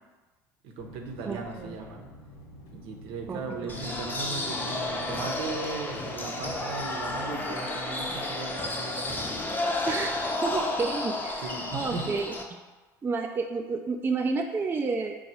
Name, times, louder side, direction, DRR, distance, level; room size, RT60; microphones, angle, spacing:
voice 1, 0.6-2.1 2.7-9.3 11.4-12.1, right 4 dB, 65° right, 2 dB, 0.7 m, -37 dB
sound 1, 0.8-7.2, left 1 dB, 70° left, 0.8 m, -49 dB
voice 2, 1.3-1.7 3.3-3.7 9.9-10.1 10.4-12.3 13.0-15.2, right 4 dB, 20° right, 3 dB, 0.4 m, -30 dB
sound 2, 3.7-12.4, left 2 dB, 20° left, 0.6 m, -32 dB
sound 3, 3.7-7.2, equal, 40° right, 0.9 m, -45 dB
4.6 x 2.3 x 4.1 m, 1.2 s
hypercardioid pair, 75°, 10 cm